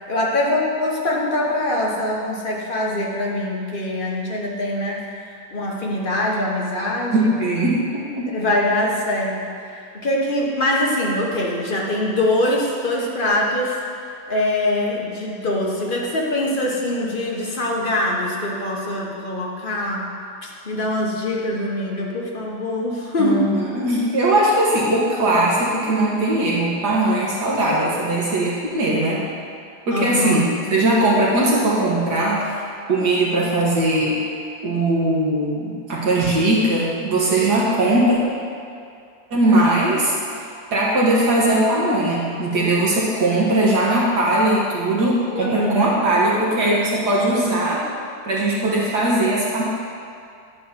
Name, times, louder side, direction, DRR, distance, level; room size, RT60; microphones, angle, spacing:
voice 1, 0.1-5.0 5.5-7.3 8.3-13.8 14.3-20.1 20.4-23.4 29.9-30.4 45.3-45.9, left 1 dB, 30° left, -3 dB, 1.1 m, -23 dB
voice 2, 7.1-8.4 23.2-29.2 29.9-32.5 32.9-34.2 34.6-38.2 39.3-40.2 40.7-47.8 48.3-49.6, right 1 dB, 60° right, -5 dB, 1.8 m, -19 dB
10.5 x 4.4 x 6.8 m, 2.4 s
omnidirectional pair, 2.1 m